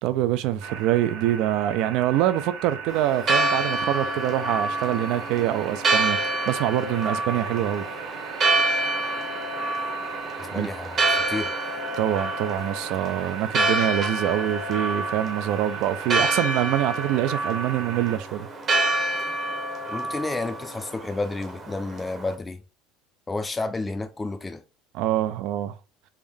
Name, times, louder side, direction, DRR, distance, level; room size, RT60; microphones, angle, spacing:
voice 1, 0.0-7.8 10.5-10.7 12.0-18.5 24.9-25.7, right 13 dB, 65° right, 0.3 m, -25 dB
sound 1, 0.6-18.2, right 7 dB, 80° right, 1.1 m, -37 dB
Church bell, 2.9-22.3, right 2 dB, 30° right, 0.8 m, -28 dB
voice 2, 10.4-11.5 19.9-22.6 23.3-24.6, left 2 dB, 15° left, 0.4 m, -31 dB
3.5 x 2.6 x 3.4 m
cardioid pair, 150°, 0 cm